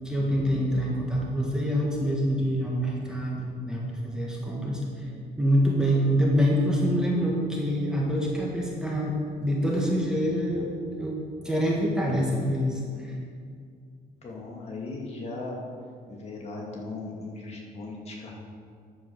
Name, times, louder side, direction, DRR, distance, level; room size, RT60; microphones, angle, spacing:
voice 1, 0.0-5.1 5.4-11.2 11.4-13.1, equal, 5° right, -3 dB, 1.7 m, -26 dB
voice 2, 14.2-15.6 16.1-18.3, left 3 dB, 40° left, -2 dB, 2.3 m, -37 dB
12.5 x 5.3 x 6.6 m, 2.2 s
cardioid pair, 110°, 17 cm